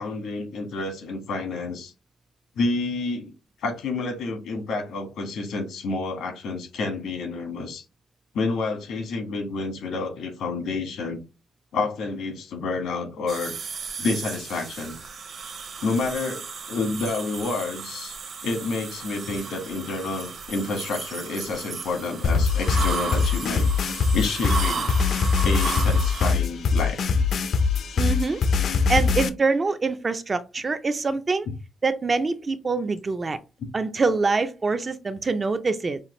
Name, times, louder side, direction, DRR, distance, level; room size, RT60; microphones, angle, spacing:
voice 1, 0.0-1.9 2.5-3.3 3.6-7.8 8.3-11.2 11.7-13.6 14.0-14.9 15.8-18.2 18.4-24.9 25.4-27.0, left 3 dB, 85° left, 1.4 m, -29 dB
sound 1, 13.3-26.3, right 5 dB, 45° right, 0.8 m, -34 dB
sound 2, 22.2-29.3, left 5 dB, 55° left, 0.4 m, -22 dB
voice 2, 28.0-28.4 28.9-31.5 31.8-33.4 33.7-36.0, right 4 dB, 25° right, 0.4 m, -25 dB
5.6 x 2.5 x 3.1 m
cardioid pair, 165°, 0 cm